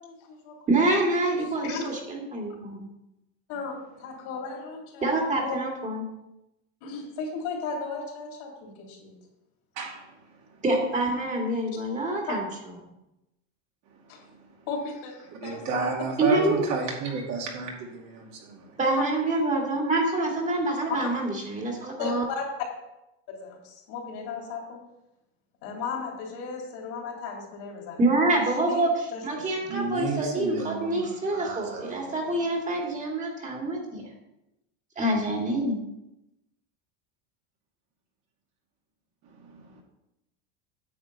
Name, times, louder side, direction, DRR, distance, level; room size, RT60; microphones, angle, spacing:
voice 1, 0.0-0.5 1.2-1.3 1.6-1.9 3.5-5.6 6.8-9.1 12.3-12.4 14.1-14.2 14.7-15.9 22.0-22.5 23.4-24.8 25.6-28.0 28.3-28.9 29.1-29.5, left 5 dB, 65° left, 0 dB, 3.2 m, -36 dB
voice 2, 0.7-2.9 5.0-6.1 10.6-12.5 16.2-16.6 18.8-22.2 28.0-34.0 35.0-35.8, right 2 dB, 20° right, 0 dB, 2.2 m, -26 dB
voice 3, 9.8-10.6 13.9-14.5 15.3-18.8 29.6-32.3 39.2-39.8, right 4 dB, 55° right, -1 dB, 2.5 m, -33 dB
9.6 x 7.2 x 4.1 m, 0.91 s
supercardioid pair, 135°, 33 cm